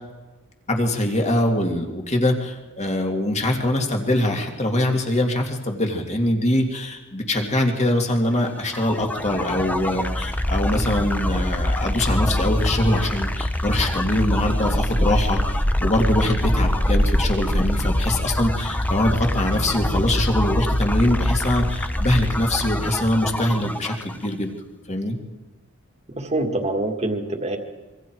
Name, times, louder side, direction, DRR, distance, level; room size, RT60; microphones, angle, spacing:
voice 1, 0.7-24.5 24.9-25.2, left 1 dB, 30° left, 2 dB, 2.4 m, -23 dB
sound 1, 8.6-24.3, left 1 dB, 10° left, 0.8 m, -24 dB
voice 2, 26.1-27.6, right 2 dB, 30° right, 4 dB, 2.0 m, -25 dB
25.5 x 24.0 x 4.7 m, 1.2 s
head